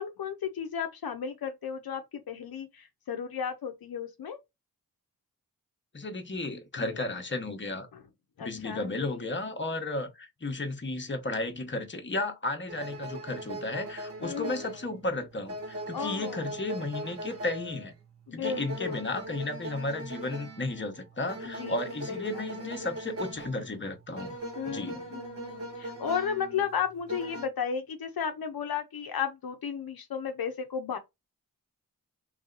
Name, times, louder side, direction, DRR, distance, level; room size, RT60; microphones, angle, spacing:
voice 1, 0.0-4.4 6.8-7.0 7.9-8.0 8.4-9.3 14.2-14.7 15.9-16.6 18.3-19.0 21.4-21.8 22.1-22.4 24.6-31.0, left 7 dB, 75° left, 0.7 m, -34 dB
voice 2, 5.9-7.9 8.4-17.9 18.3-24.3 24.7-25.0, left 2 dB, 30° left, 1.0 m, -34 dB
sound 1, 12.7-27.5, right 1 dB, 40° right, 1.4 m, -40 dB
3.3 x 2.7 x 3.8 m
cardioid pair, 60°, 36 cm